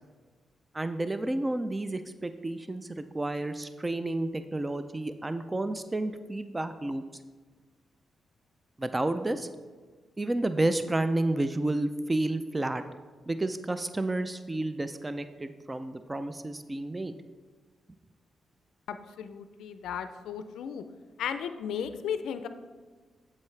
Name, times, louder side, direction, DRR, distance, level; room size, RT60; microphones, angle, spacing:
voice 1, 0.7-7.0 8.8-9.5 10.2-12.8 13.3-17.2, right 2 dB, 25° right, 10 dB, 0.4 m, -31 dB
voice 2, 18.9-20.8 21.2-22.5, left 8 dB, 80° left, 10 dB, 0.4 m, -35 dB
8.2 x 7.4 x 3.3 m, 1.4 s
supercardioid pair, 55°, 0 cm